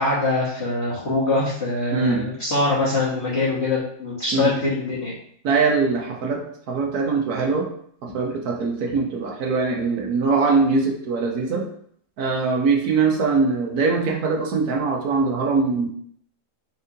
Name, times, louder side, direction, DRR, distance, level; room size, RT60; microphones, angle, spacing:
voice 1, 0.0-5.1 8.1-8.2, left 2 dB, 50° left, -10 dB, 1.3 m, -23 dB
voice 2, 1.9-2.2 4.3-4.5 5.4-7.7 8.1-11.6 12.2-15.9, right 4 dB, 90° right, 0 dB, 1.4 m, -22 dB
4.7 x 3.6 x 2.7 m, 0.63 s
omnidirectional pair, 1.6 m